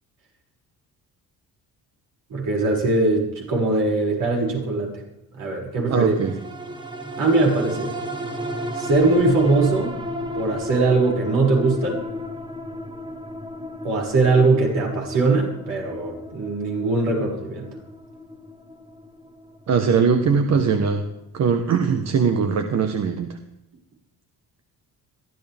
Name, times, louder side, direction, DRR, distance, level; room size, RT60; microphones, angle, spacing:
voice 1, 2.3-4.9 5.3-6.1 7.2-7.9 8.7-9.9 10.3-12.0 13.8-17.7, right 3 dB, 65° right, -2 dB, 6.6 m, -21 dB
voice 2, 5.9-6.4 19.7-21.0 21.3-23.4, right 6 dB, 50° right, 6 dB, 1.4 m, -21 dB
sound 1, 6.1-20.8 21.2-21.3, equal, 15° right, 1.8 m, -34 dB
23.0 x 14.0 x 3.6 m, 0.85 s
cardioid pair, 145°, 35 cm